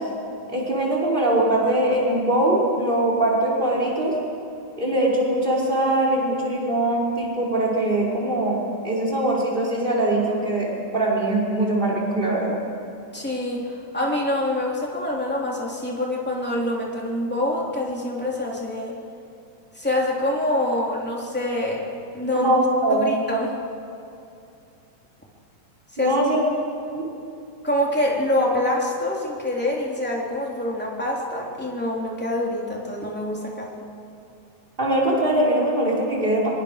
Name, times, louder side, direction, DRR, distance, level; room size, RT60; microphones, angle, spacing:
voice 1, 0.5-4.1 4.8-12.6 22.3-23.1 26.0-26.4 26.9-27.0 34.8-36.5, right 1 dB, 15° right, -4 dB, 5.4 m, -22 dB
voice 2, 13.1-19.0 19.7-22.5 22.9-23.5 26.0-26.2 27.6-33.9, left 1 dB, 5° left, -3 dB, 3.2 m, -25 dB
26.0 x 23.5 x 6.8 m, 2.7 s
omnidirectional pair, 3.7 m